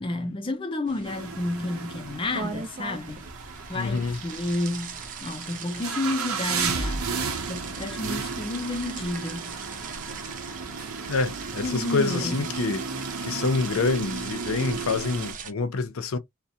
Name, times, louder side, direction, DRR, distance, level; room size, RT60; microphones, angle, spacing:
voice 1, 0.0-3.3 3.7-7.1 7.5-9.6 11.6-12.5, left 2 dB, 25° left, 0.4 m, -31 dB
sound 1, 0.9-15.5, right 6 dB, 40° right, 0.4 m, -40 dB
sound 2, 1.1-15.3, right 5 dB, 85° right, 0.6 m, -34 dB
voice 2, 3.7-4.2 11.1-12.9 13.2-16.2, left 4 dB, 80° left, 0.5 m, -27 dB
sound 3, 6.7-10.0, right 1 dB, 70° right, 1.0 m, -38 dB
2.4 x 2.1 x 2.7 m
head